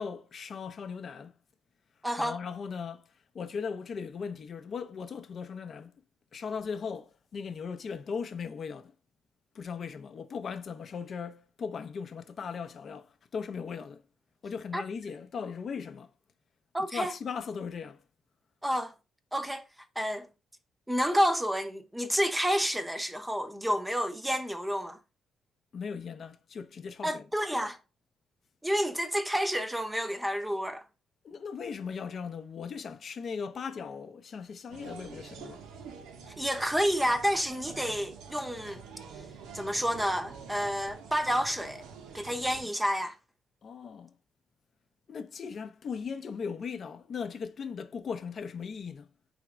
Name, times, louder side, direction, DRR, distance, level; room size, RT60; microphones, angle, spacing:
voice 1, 0.0-1.3 2.2-5.9 6.3-8.9 9.5-14.0 14.4-16.1 16.9-18.0 25.7-27.3 31.2-35.6 42.6-42.7 43.6-44.1 45.1-49.1, left 6 dB, 50° left, 0.5 m, -38 dB
voice 2, 2.0-2.4 14.7-14.8 16.7-17.1 18.6-18.9 19.3-19.6 20.0-20.3 20.9-25.0 27.0-27.8 28.6-30.8 36.4-38.8 39.5-41.9 42.1-43.2, equal, 5° right, 0.7 m, -29 dB
sound 1, 34.7-42.6, right 5 dB, 90° right, 0.9 m, -47 dB
3.5 x 3.0 x 4.8 m
cardioid pair, 90°, 0 cm